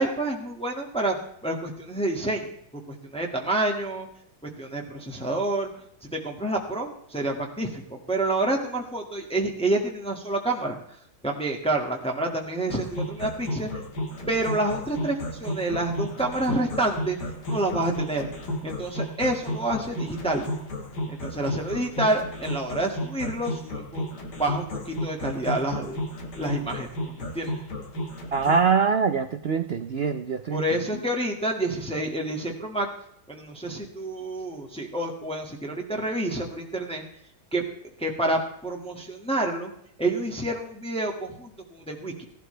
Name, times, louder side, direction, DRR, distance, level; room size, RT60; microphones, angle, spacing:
voice 1, 0.0-2.5 2.9-4.1 4.6-5.7 6.1-10.8 11.2-13.7 14.3-17.2 17.5-18.3 18.6-20.5 21.1-24.1 24.4-26.0 26.3-27.5 30.5-32.9 33.3-37.0 37.5-37.6 38.0-39.7 40.0-42.3, right 2 dB, 5° left, 0 dB, 1.7 m, -28 dB
sound 1, 12.7-28.7, left 1 dB, 60° left, 2.5 m, -32 dB
voice 2, 28.3-30.6, right 6 dB, 75° right, 10 dB, 0.5 m, -23 dB
16.5 x 12.0 x 3.3 m, 0.69 s
omnidirectional pair, 2.0 m